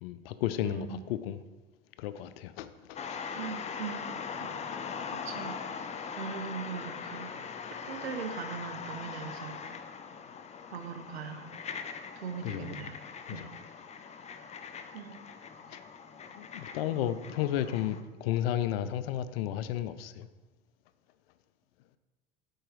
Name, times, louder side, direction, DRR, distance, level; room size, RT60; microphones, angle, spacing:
voice 1, 0.0-1.4 2.0-3.3 4.7-4.8 12.4-12.8 13.3-13.5 15.7-15.8 16.4-20.3, left 11 dB, 75° left, 0.5 m, -33 dB
voice 2, 0.6-1.0 3.4-4.5 5.1-5.5 6.2-7.3 7.9-9.6 10.7-11.5 12.2-13.0 13.3-13.5 14.9-15.2, right 7 dB, 90° right, 0.7 m, -40 dB
sound 1, 3.0-18.0, left 6 dB, 25° left, 0.5 m, -41 dB
4.6 x 4.5 x 4.9 m
hypercardioid pair, 80°, 30 cm